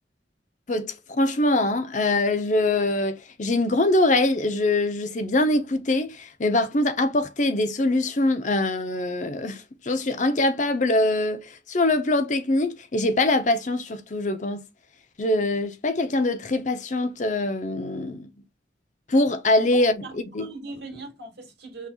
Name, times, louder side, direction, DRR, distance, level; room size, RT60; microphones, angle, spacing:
voice 1, 0.7-14.6 15.2-18.3 19.1-19.9 20.3-20.5, left 2 dB, 45° left, 0.7 m, -23 dB
voice 2, 19.7-21.9, right 2 dB, 65° right, 2.0 m, -40 dB
5.7 x 3.0 x 2.4 m
head